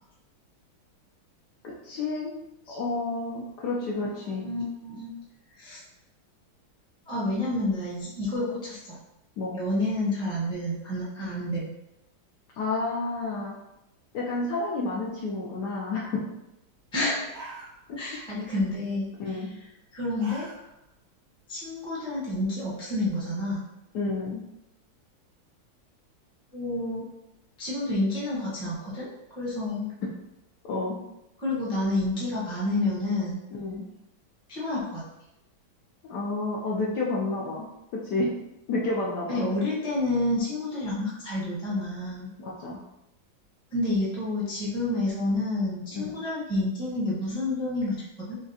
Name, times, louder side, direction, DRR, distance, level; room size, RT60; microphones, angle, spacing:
voice 1, 1.6-2.4 2.7-4.4 9.4-9.6 12.6-13.5 14.1-16.3 17.9-18.0 19.2-19.5 23.9-24.4 30.6-31.0 33.5-33.8 36.0-37.7 37.9-38.3 38.7-39.4 42.4-42.8 45.9-46.0, left 3 dB, 70° left, -3 dB, 1.1 m, -30 dB
voice 2, 4.4-5.1 5.5-5.8 7.1-9.0 9.5-11.7 16.9-17.4 18.0-19.4 19.9-20.5 21.5-23.7 26.5-27.0 27.6-29.1 29.3-29.9 31.4-33.4 34.5-35.0 39.3-42.3 43.7-48.4, left 2 dB, 5° left, -7 dB, 0.6 m, -29 dB
sound 1, 16.8-16.9 17.2-18.2 18.5-18.9 19.9-20.9 21.3-21.4 21.9-23.0, right 2 dB, 55° right, 0.8 m, -44 dB
5.8 x 2.1 x 2.7 m, 0.88 s
omnidirectional pair, 2.1 m